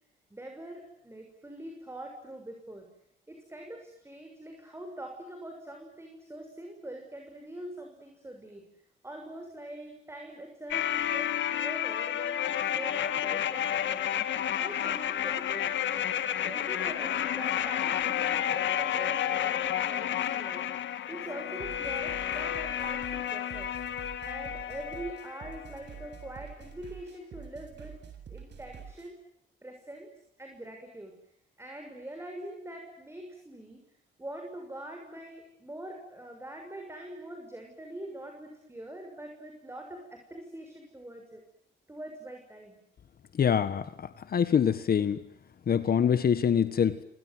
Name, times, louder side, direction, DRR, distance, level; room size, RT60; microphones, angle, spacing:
voice 1, 0.3-2.9 3.3-8.6 9.0-14.0 14.5-15.7 16.4-23.7 24.2-27.9 28.3-29.2 29.6-30.1 30.4-31.1 31.6-33.8 34.2-41.4 41.9-42.8, right 1 dB, 10° right, 3 dB, 6.6 m, -43 dB
sound 1, 10.7-25.7 26.0-26.1, left 10 dB, 70° left, 1.9 m, -31 dB
sound 2, 21.6-29.1, right 7 dB, 60° right, 7.6 m, -47 dB
voice 2, 43.4-43.8 44.3-45.2 45.7-47.0, left 8 dB, 50° left, 12 dB, 1.5 m, -24 dB
29.0 x 25.5 x 7.9 m, 0.76 s
cardioid pair, 90°, 20 cm